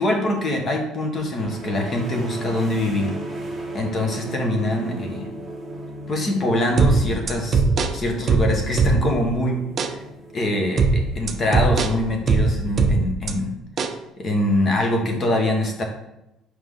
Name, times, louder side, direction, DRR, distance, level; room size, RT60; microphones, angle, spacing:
voice 1, 0.0-3.2 3.7-5.3 6.1-7.6 7.9-10.0 10.3-13.6 14.2-15.8, left 1 dB, 35° left, 3 dB, 1.2 m, -24 dB
sound 1, 1.2-12.7, right 1 dB, 5° right, 1.6 m, -36 dB
sound 2, 6.8-9.3 9.8-10.0 10.8-13.3 13.8-14.0, right 4 dB, 35° right, 0.5 m, -20 dB
5.8 x 4.8 x 3.7 m, 0.89 s
cardioid pair, 130°, 0 cm